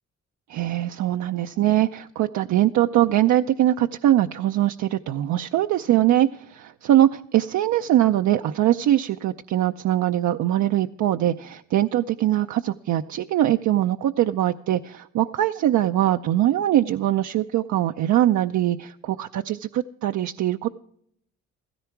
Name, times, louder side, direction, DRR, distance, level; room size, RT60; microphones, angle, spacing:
voice 1, 0.5-20.7, right 13 dB, 70° right, 7 dB, 0.6 m, -22 dB
15.5 x 14.0 x 4.6 m, 0.68 s
cardioid pair, 90°, 30 cm